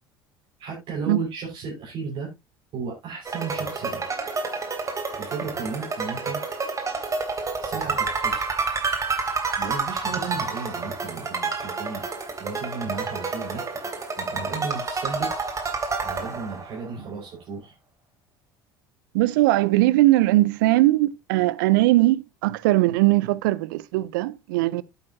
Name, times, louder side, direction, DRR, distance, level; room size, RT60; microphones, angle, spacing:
voice 1, 0.6-2.3 2.7-4.0 5.2-6.4 7.6-8.5 9.6-12.0 12.4-13.6 14.2-15.3 16.0-17.7, right 5 dB, 50° right, 5.3 m, -34 dB
sound 1, 3.3-16.9, right 4 dB, 30° right, 3.1 m, -29 dB
voice 2, 19.1-24.8, right 18 dB, 75° right, 0.6 m, -20 dB
11.0 x 9.0 x 2.8 m
hypercardioid pair, 70°, 11 cm